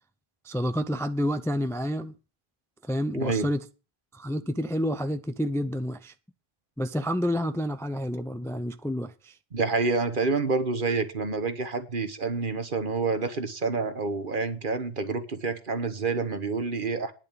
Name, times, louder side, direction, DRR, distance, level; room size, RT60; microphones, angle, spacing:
voice 1, 0.4-2.1 2.9-3.6 4.1-6.1 6.8-9.3, equal, 5° left, 0.5 m, -29 dB
voice 2, 3.1-3.5 9.5-17.1, right 4 dB, 55° right, 1.5 m, -28 dB
10.5 x 6.6 x 8.9 m
omnidirectional pair, 1.0 m